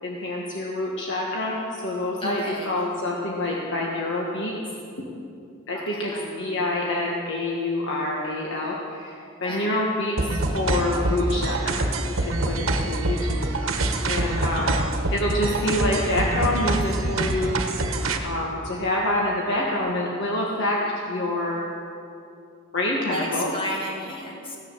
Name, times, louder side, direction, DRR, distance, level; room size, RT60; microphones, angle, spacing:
voice 1, 0.0-4.6 5.7-11.9 12.2-14.8 15.1-17.6 18.2-21.6 22.7-23.5, left 1 dB, 60° left, -2 dB, 1.5 m, -27 dB
voice 2, 2.2-2.7 5.9-6.6 9.4-9.7 23.1-24.6, left 1 dB, 25° left, -2 dB, 2.4 m, -32 dB
sound 1, 10.2-18.2, right 2 dB, 70° right, 1.3 m, -25 dB
17.0 x 10.0 x 6.8 m, 2.6 s
head